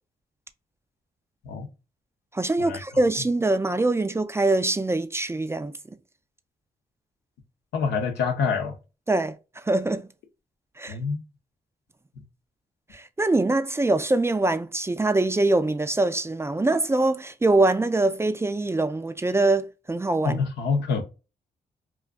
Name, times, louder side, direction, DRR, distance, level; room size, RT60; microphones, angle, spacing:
voice 1, 2.3-5.7 9.1-10.1 10.8-11.0 12.9-20.4, right 2 dB, 15° right, 0.3 m, -23 dB
voice 2, 7.7-8.8 10.9-11.2 20.2-21.0, left 5 dB, 85° left, 0.6 m, -26 dB
2.4 x 2.3 x 2.2 m
supercardioid pair, 50°, 17 cm